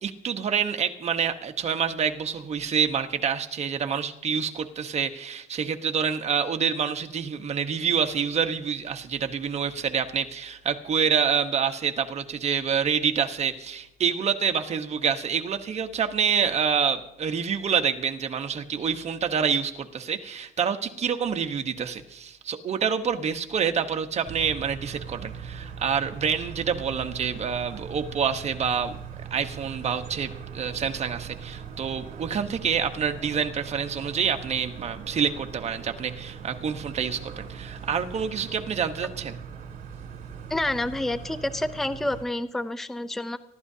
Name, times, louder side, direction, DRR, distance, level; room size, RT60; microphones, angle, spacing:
voice 1, 0.0-28.9 29.3-39.4, right 7 dB, 40° right, 6 dB, 1.1 m, -27 dB
sound 1, 24.2-42.3, right 7 dB, 55° right, 2.9 m, -40 dB
voice 2, 40.5-43.4, left 1 dB, ahead, 12 dB, 0.5 m, -28 dB
25.0 x 12.5 x 2.8 m, 0.88 s
cardioid pair, 110°, 17 cm